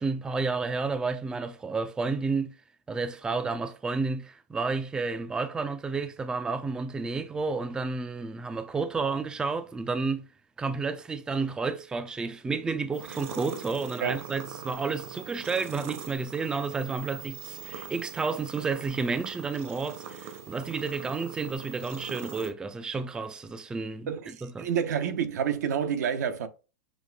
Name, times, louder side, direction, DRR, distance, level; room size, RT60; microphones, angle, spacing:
voice 1, 0.0-2.5 2.9-10.3 10.6-24.7, right 4 dB, 10° right, 0.3 m, -31 dB
sound 1, 12.9-22.5, right 7 dB, 50° right, 0.9 m, -42 dB
voice 2, 24.1-26.5, right 8 dB, 80° right, 0.8 m, -29 dB
6.2 x 2.5 x 2.3 m
hypercardioid pair, 135°, 9 cm